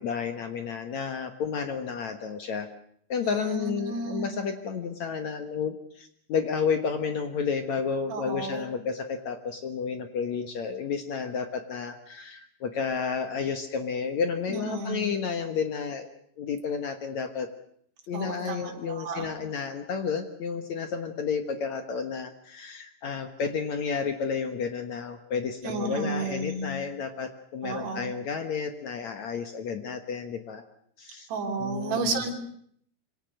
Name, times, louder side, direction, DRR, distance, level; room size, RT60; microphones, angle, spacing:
voice 1, 0.0-2.7 3.1-16.1 16.4-17.5 18.1-30.6 31.0-31.3 31.6-32.1, left 6 dB, 60° left, 7 dB, 1.9 m, -31 dB
voice 2, 3.2-4.4 8.1-8.7 14.5-15.2 18.1-19.3 25.6-26.8 27.6-28.1 31.3-32.3, right 3 dB, 65° right, 2 dB, 5.4 m, -32 dB
26.5 x 24.0 x 6.5 m, 0.65 s
omnidirectional pair, 5.1 m